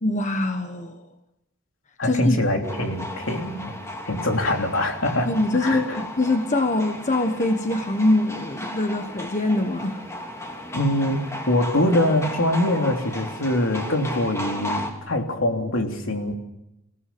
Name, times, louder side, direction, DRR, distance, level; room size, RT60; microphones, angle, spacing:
voice 1, 0.0-1.0 2.0-2.4 5.2-10.0, left 2 dB, 40° left, 6 dB, 1.4 m, -23 dB
voice 2, 2.0-3.7 4.0-5.3 5.6-6.0 10.7-16.3, left 1 dB, 75° left, 3 dB, 3.3 m, -23 dB
sound 1, 2.6-14.9, left 1 dB, 15° left, 3.0 m, -35 dB
28.0 x 17.0 x 7.0 m, 0.87 s
head